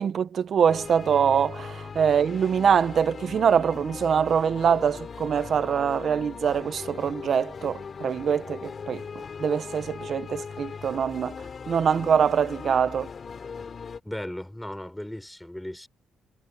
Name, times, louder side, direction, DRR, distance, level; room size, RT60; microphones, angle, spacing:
voice 1, 0.0-11.3 11.7-13.1, right 7 dB, 55° right, 0.9 m, -24 dB
sound 1, 0.7-14.0, left 5 dB, 45° left, 2.9 m, -39 dB
voice 2, 14.0-15.9, left 1 dB, 5° left, 4.3 m, -36 dB
cardioid pair, 90°, 0 cm